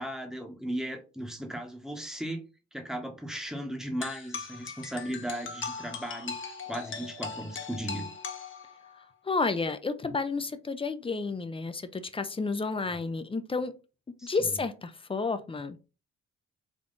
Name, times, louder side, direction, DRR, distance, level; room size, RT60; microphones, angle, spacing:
voice 1, 0.0-2.5 2.7-8.1 14.2-14.5, right 1 dB, ahead, 4 dB, 0.9 m, -36 dB
sound 1, 4.0-9.0, left 5 dB, 40° left, 0.8 m, -39 dB
voice 2, 9.2-13.7 14.2-15.8, left 4 dB, 20° left, 11 dB, 0.4 m, -31 dB
3.6 x 2.3 x 3.8 m, 0.32 s
cardioid pair, 90°, 30 cm